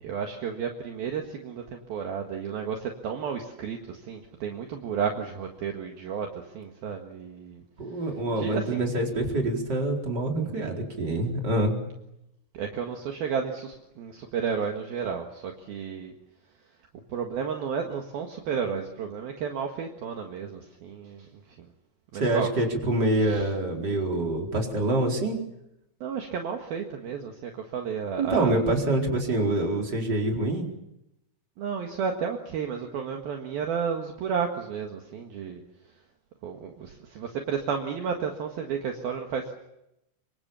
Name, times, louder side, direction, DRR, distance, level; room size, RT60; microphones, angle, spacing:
voice 1, 0.0-7.6 8.4-8.9 12.5-16.1 17.1-21.3 21.6-21.7 22.1-22.5 23.2-23.5 26.0-28.6 31.6-35.6 36.4-39.5, right 6 dB, 60° right, 3 dB, 3.3 m, -32 dB
voice 2, 7.8-11.9 22.1-25.4 28.2-30.7, right 1 dB, 25° right, 1 dB, 4.6 m, -26 dB
27.5 x 24.5 x 7.2 m, 0.85 s
omnidirectional pair, 5.2 m